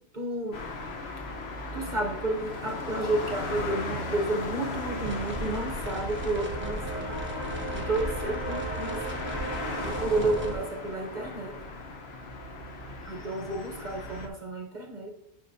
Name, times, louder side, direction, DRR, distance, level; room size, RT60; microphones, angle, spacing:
voice 1, 0.1-0.6 1.7-7.2 7.7-9.3 9.8-11.5 13.1-15.1, right 2 dB, 40° right, 1 dB, 0.9 m, -31 dB
sound 1, 0.5-14.3, left 2 dB, 55° left, 1.1 m, -37 dB
sound 2, 5.0-10.5, right 1 dB, 10° right, 0.9 m, -35 dB
9.9 x 5.6 x 2.7 m, 0.79 s
omnidirectional pair, 1.4 m